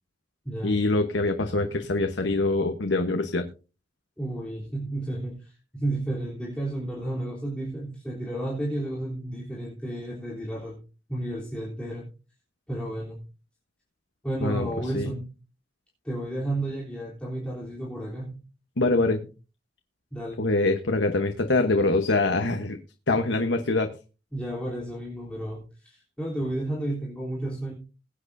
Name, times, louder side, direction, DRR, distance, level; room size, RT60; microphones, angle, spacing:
voice 1, 0.6-3.5 14.4-15.1 18.8-19.3 20.4-22.8 23.1-24.0, left 2 dB, 70° left, 6 dB, 1.1 m, -24 dB
voice 2, 4.2-10.8 11.1-12.1 12.7-13.2 14.2-15.3 16.0-18.4 20.1-20.4 24.3-27.7, right 1 dB, 5° left, -7 dB, 3.4 m, -32 dB
21.5 x 8.6 x 2.7 m, 0.33 s
head